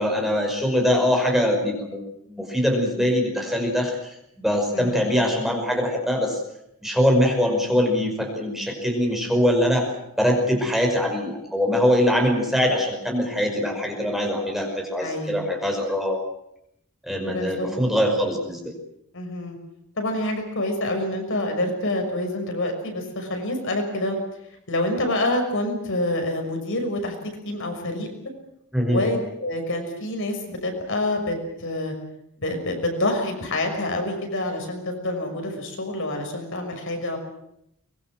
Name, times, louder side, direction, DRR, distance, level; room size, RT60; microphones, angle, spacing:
voice 1, 0.0-2.0 2.3-6.4 6.8-9.9 10.2-16.2 17.0-18.7 28.7-29.1, equal, ahead, 1 dB, 5.5 m, -22 dB
voice 2, 15.0-15.4 17.2-17.7 19.1-19.6 20.0-24.2 24.7-27.1 27.4-28.1 28.8-31.9 32.4-37.2, left 1 dB, 60° left, 4 dB, 6.1 m, -27 dB
24.0 x 22.0 x 7.7 m, 0.78 s
head